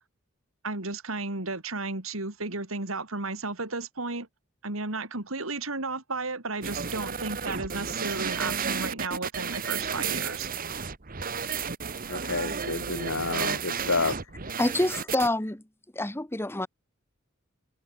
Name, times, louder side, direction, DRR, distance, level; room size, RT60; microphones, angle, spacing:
voice 1, 0.6-4.3 4.6-10.5, right 3 dB, 80° right, 3.5 m, -33 dB
sound 1, 6.6-15.3, right 6 dB, 45° right, 1.5 m, -32 dB
voice 2, 12.1-14.2, left 3 dB, 75° left, 2.1 m, -29 dB
voice 3, 14.6-15.6 15.9-16.7, left 1 dB, 10° left, 1.2 m, -27 dB
head